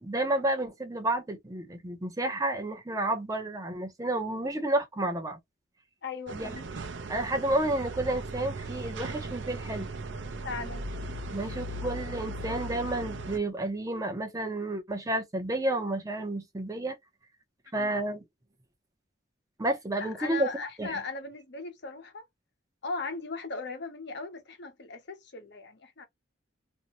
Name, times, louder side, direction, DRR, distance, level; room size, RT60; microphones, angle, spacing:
voice 1, 0.0-5.4 6.3-6.5 7.1-9.9 11.3-17.0 17.7-18.2 19.6-20.5 20.8-21.0, right 1 dB, 20° right, 0.7 m, -31 dB
voice 2, 6.0-6.6 10.4-10.8 17.8-17.9 20.0-22.2 22.8-26.1, left 4 dB, 65° left, 0.9 m, -38 dB
sound 1, 6.3-13.4, right 2 dB, 75° right, 0.6 m, -38 dB
2.7 x 2.2 x 2.9 m
head